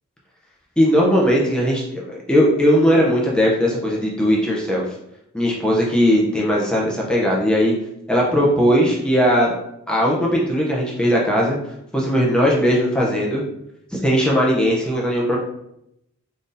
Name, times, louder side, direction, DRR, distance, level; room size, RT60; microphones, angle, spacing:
voice 1, 0.8-4.8 5.3-7.7 8.1-9.6 9.9-11.6 11.9-13.4 13.9-15.4, equal, 5° left, -4 dB, 0.4 m, -18 dB
3.8 x 2.6 x 2.5 m, 0.80 s
head